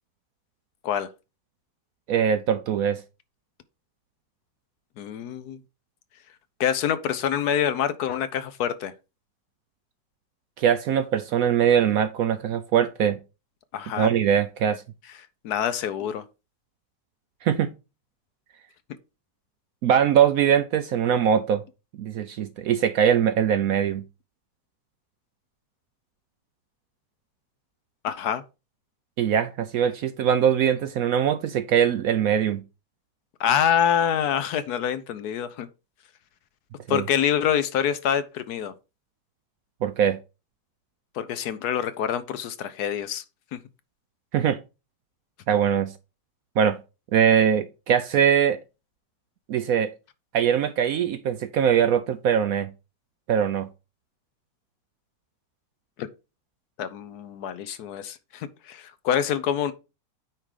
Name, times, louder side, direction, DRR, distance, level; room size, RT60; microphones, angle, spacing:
voice 1, 2.1-3.0 10.6-13.2 14.0-14.8 17.4-17.7 19.8-21.6 22.0-24.0 29.2-32.6 36.9-37.0 39.8-40.2 44.3-44.6 45.5-45.9 46.6-46.8 47.1-48.6 49.5-49.9 50.3-52.7 53.3-53.7, right 8 dB, 70° right, 0.9 m, -22 dB
voice 2, 5.0-5.6 6.6-8.9 13.7-14.1 15.4-16.2 28.0-28.4 33.4-35.7 36.9-38.7 41.1-43.2 43.5-43.6 56.0-56.1 56.8-59.7, left 9 dB, 70° left, 1.1 m, -26 dB
9.0 x 3.7 x 4.9 m
omnidirectional pair, 1.9 m